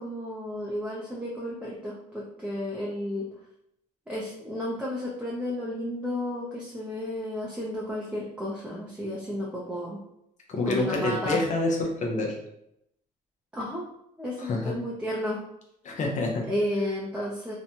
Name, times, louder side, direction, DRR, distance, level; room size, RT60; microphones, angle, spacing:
voice 1, 0.0-3.3 4.1-10.0 10.6-11.4 13.5-13.9 14.2-15.4 16.5-17.5, left 1 dB, 5° right, -5 dB, 0.6 m, -32 dB
voice 2, 10.5-12.4 14.4-14.7 15.8-16.5, left 2 dB, 45° left, 0 dB, 0.7 m, -27 dB
2.8 x 2.2 x 2.8 m, 0.78 s
cardioid pair, 110°, 17 cm